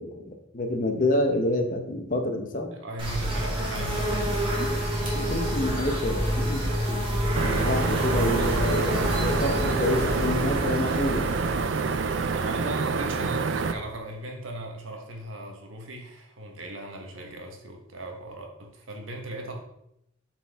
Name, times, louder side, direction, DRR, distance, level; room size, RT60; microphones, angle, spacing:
voice 1, 0.0-2.7 4.6-4.7 5.1-7.0 7.4-11.3, left 1 dB, 40° left, 5 dB, 0.9 m, -28 dB
voice 2, 2.7-5.6 12.2-19.7, right 1 dB, 85° right, 3 dB, 1.3 m, -38 dB
sound 1, 3.0-13.6, equal, 25° right, 1.6 m, -28 dB
sound 2, 7.3-13.7, right 4 dB, 65° right, 0.4 m, -27 dB
7.6 x 4.5 x 3.5 m, 0.80 s
head